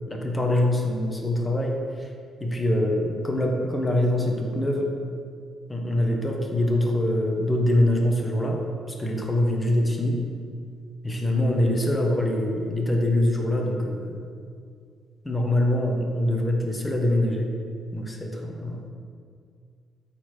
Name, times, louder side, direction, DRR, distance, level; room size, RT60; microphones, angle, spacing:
voice 1, 0.1-2.1 2.4-4.9 5.7-8.6 8.9-10.2 11.0-14.2 15.2-17.5 17.9-18.9, left 1 dB, 15° left, 0 dB, 1.5 m, -24 dB
12.5 x 4.5 x 4.7 m, 2.2 s
cardioid pair, 90°, 0 cm